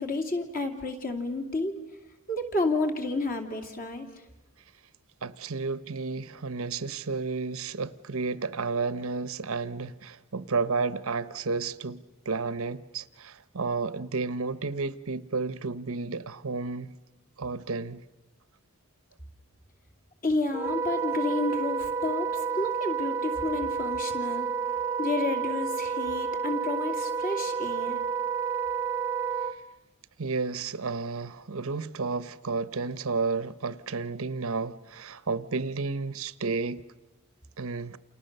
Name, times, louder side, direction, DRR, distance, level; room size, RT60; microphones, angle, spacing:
voice 1, 0.0-1.8 2.3-4.1 20.2-28.0, left 2 dB, 40° left, 2.8 m, -31 dB
voice 2, 5.2-16.9 17.4-18.0 30.2-36.8 37.6-38.0, right 4 dB, 70° right, 0.8 m, -32 dB
Wind instrument woodwind instrument, 20.5-29.5, right 6 dB, 10° right, 1.0 m, -30 dB
29.5 x 28.0 x 6.7 m
head